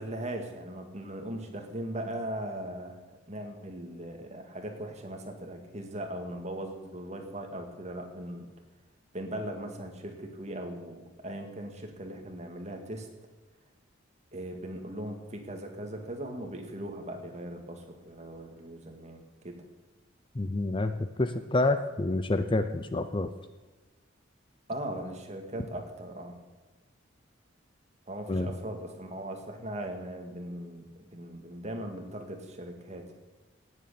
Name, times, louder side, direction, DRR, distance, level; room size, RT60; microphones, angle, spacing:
voice 1, 0.0-8.5 9.1-13.1 14.3-19.6 24.7-26.4 28.1-33.2, right 1 dB, 35° right, 4 dB, 2.1 m, -39 dB
voice 2, 20.3-23.3 28.3-28.5, left 2 dB, 25° left, 10 dB, 0.6 m, -28 dB
17.5 x 8.1 x 6.9 m, 1.3 s
head